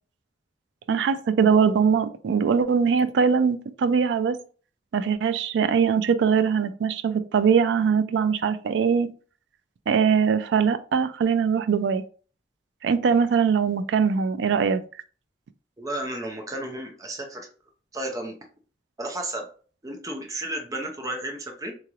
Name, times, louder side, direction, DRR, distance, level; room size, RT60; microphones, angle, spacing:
voice 1, 0.9-4.4 4.9-9.1 9.9-12.0 12.8-14.8, right 6 dB, 75° right, 0.3 m, -22 dB
voice 2, 15.8-17.5 17.9-18.3 19.0-19.5 19.8-21.7, right 1 dB, 20° right, 0.6 m, -32 dB
3.0 x 2.9 x 2.4 m
head